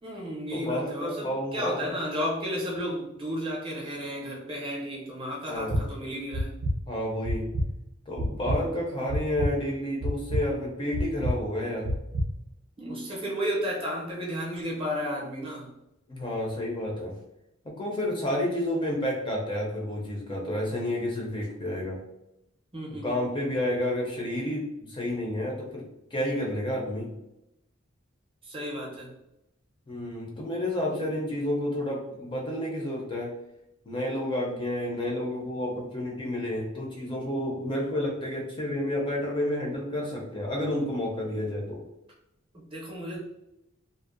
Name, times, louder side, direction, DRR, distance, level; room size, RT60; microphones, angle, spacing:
voice 1, 0.0-6.5 8.5-8.6 12.8-15.7 22.7-23.2 28.4-29.1 42.5-43.2, equal, 25° right, -2 dB, 0.6 m, -33 dB
voice 2, 0.5-1.9 5.5-5.9 6.9-7.5 8.1-11.9 16.1-17.1 17.6-22.0 22.9-27.1 29.9-33.3 33.9-41.8, left 1 dB, 25° left, -2 dB, 0.4 m, -30 dB
sound 1, 5.6-5.8 6.3-6.7 7.2-7.7 8.2-8.6 9.1-9.5 10.0-10.4 10.9-11.3 11.8-12.3, equal, 75° right, 0.5 m, -27 dB
2.5 x 2.0 x 2.4 m, 0.87 s
head